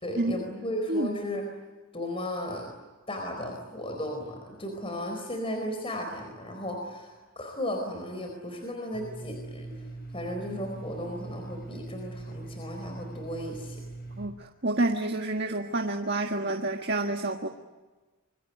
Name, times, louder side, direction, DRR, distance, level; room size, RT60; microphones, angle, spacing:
voice 1, 0.0-1.4 1.9-2.7 3.1-9.8 10.1-13.8, left 1 dB, 25° left, 4 dB, 4.4 m, -35 dB
Domestic sounds home sounds, 8.9-14.3, right 2 dB, 45° left, 6.2 m, -41 dB
voice 2, 14.2-17.5, right 2 dB, 50° right, 2 dB, 1.6 m, -29 dB
26.5 x 23.5 x 9.4 m, 1.3 s
head